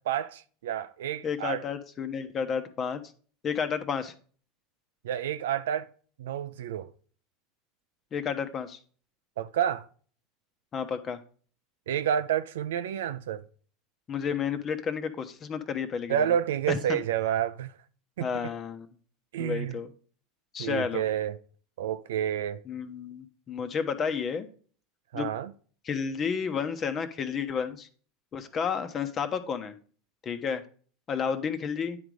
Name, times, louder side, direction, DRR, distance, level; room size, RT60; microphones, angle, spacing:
voice 1, 0.1-1.6 5.0-5.9 6.2-6.9 9.4-9.9 11.9-13.4 16.1-17.7 18.2-18.3 19.3-19.8 20.6-21.3 21.8-22.6 25.1-25.5, right 10 dB, 80° right, 0.5 m, -29 dB
voice 2, 1.2-3.0 3.4-4.1 8.1-8.8 10.7-11.2 14.1-16.3 16.7-17.0 18.2-18.9 19.4-19.9 20.5-21.0 22.7-24.5 25.1-25.3 25.8-27.9 28.3-29.7 30.2-30.6 31.1-32.0, left 6 dB, 35° left, 1.0 m, -31 dB
9.8 x 3.9 x 4.8 m
hypercardioid pair, 90°, 0 cm